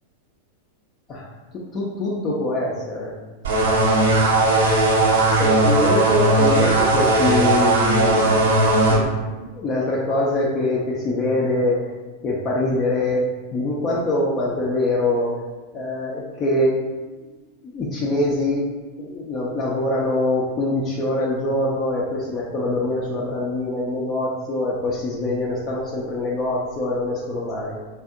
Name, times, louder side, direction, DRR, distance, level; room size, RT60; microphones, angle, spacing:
voice 1, 1.7-3.1 5.4-8.5 8.9-11.8 12.2-13.2 13.5-15.3 15.7-16.7 17.6-18.6 19.0-27.8, left 1 dB, 30° left, -5 dB, 0.5 m, -24 dB
sound 1, 3.4-9.0, right 2 dB, 60° right, 0.6 m, -17 dB
4.1 x 2.5 x 2.4 m, 1.2 s
figure-of-eight pair, 90°, 0 cm